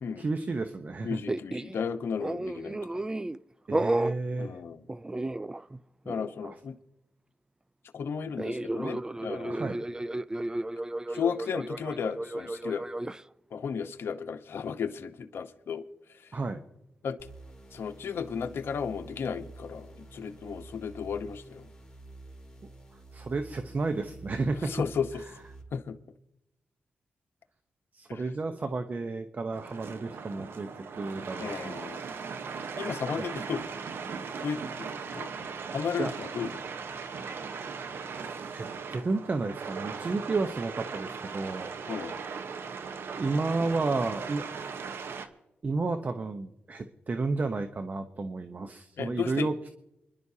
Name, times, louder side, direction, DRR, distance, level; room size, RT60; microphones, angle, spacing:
voice 1, 0.2-1.2 3.7-4.6 6.4-6.6 9.5-9.8 16.3-16.6 23.1-24.7 27.9-30.7 31.0-32.1 33.2-33.3 36.0-36.1 38.5-41.7 43.2-44.4 45.6-49.7, right 3 dB, 45° right, 8 dB, 0.9 m, -32 dB
voice 2, 1.0-3.1 4.4-4.8 6.1-6.8 7.9-9.6 11.1-13.1 13.5-15.9 17.0-17.2 17.7-21.7 24.6-25.1 25.7-26.0 28.1-28.2 31.4-32.0 32.8-33.6 34.4-34.9 35.1-35.3 35.7-36.5 41.9-42.2 49.0-49.5, left 6 dB, 70° left, 7 dB, 1.0 m, -34 dB
sound 1, 1.3-1.8 2.2-3.4 3.7-4.2 4.9-5.8 6.1-6.3 8.4-13.2, right 1 dB, 20° right, 0.4 m, -33 dB
sound 2, 17.2-25.6, right 2 dB, 15° left, 4.2 m, -49 dB
sound 3, 29.5-45.3, right 5 dB, 75° right, 1.1 m, -38 dB
26.0 x 11.0 x 2.8 m, 0.87 s
cardioid pair, 60°, 4 cm